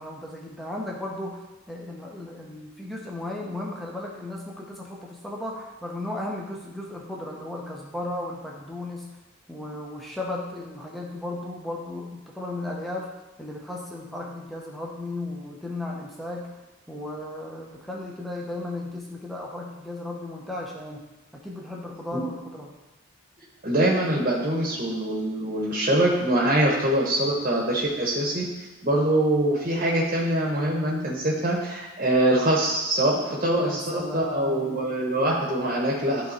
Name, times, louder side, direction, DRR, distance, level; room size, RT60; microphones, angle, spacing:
voice 1, 0.0-9.1 9.5-13.1 13.4-16.5 16.9-21.0 21.3-22.7 33.1-34.9, left 2 dB, ahead, -2 dB, 0.9 m, -35 dB
voice 2, 23.6-28.4 28.8-36.3, right 1 dB, 35° right, -2 dB, 1.2 m, -24 dB
11.5 x 3.8 x 4.4 m, 1.1 s
head